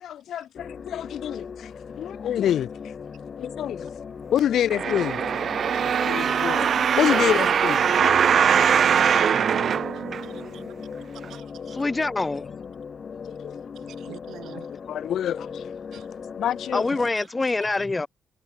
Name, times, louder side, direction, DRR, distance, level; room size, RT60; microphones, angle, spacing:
voice 1, 0.0-1.7 2.0-2.7 3.4-3.9 4.3-5.1 6.1-6.7 7.0-8.2 13.3-13.5 14.9-15.6 16.4-16.8, left 10 dB, 65° left, 1.3 m, -26 dB
sound 1, 0.6-17.1, left 6 dB, 40° left, 3.5 m, -38 dB
sound 2, 4.7-10.6 11.2-11.3, right 8 dB, 50° right, 0.8 m, -21 dB
voice 2, 10.2-10.7 11.2-11.8 13.7-14.8 15.9-16.2 17.2-17.3 17.6-17.9, right 11 dB, 80° right, 7.9 m, -48 dB
voice 3, 11.8-12.5 16.7-18.1, left 3 dB, 15° left, 0.3 m, -25 dB
cardioid pair, 150°, 0 cm